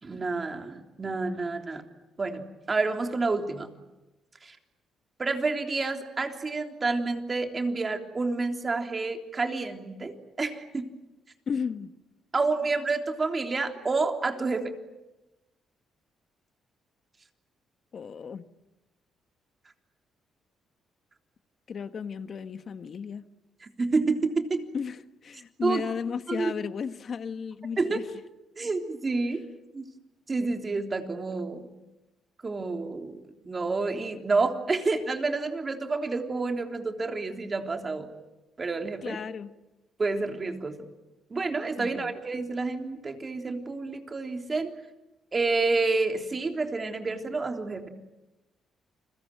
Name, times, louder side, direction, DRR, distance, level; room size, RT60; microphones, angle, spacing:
voice 1, 0.0-1.8 2.2-3.7 4.4-4.6 5.2-10.9 12.3-14.7 23.8-24.6 25.6-25.8 26.3-26.5 27.8-28.0 28.6-29.4 29.7-29.8 30.3-31.7 32.4-38.2 38.6-39.2 40.0-40.9 41.3-44.7 45.3-47.9, right 3 dB, 30° right, 4 dB, 3.5 m, -29 dB
voice 2, 11.5-11.9 17.9-18.5 21.7-23.2 24.7-28.0 39.0-39.5 41.8-42.1, left 6 dB, 50° left, 10 dB, 1.5 m, -34 dB
30.0 x 22.0 x 9.1 m, 1.0 s
cardioid pair, 90°, 0 cm